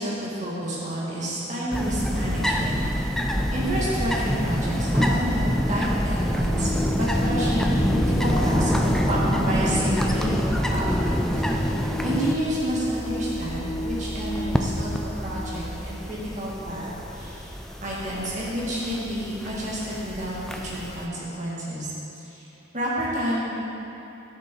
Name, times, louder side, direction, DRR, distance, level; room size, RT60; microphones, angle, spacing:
voice 1, 0.0-2.8 3.5-11.8 12.0-17.5 17.8-21.9 22.2-22.5 22.7-23.5, equal, 35° right, -7 dB, 2.1 m, -30 dB
sound 1, 1.7-21.0, equal, ahead, 0.4 m, -26 dB
sound 2, 6.2-15.7, equal, 90° right, 2.2 m, -32 dB
11.0 x 6.5 x 3.9 m, 2.9 s
head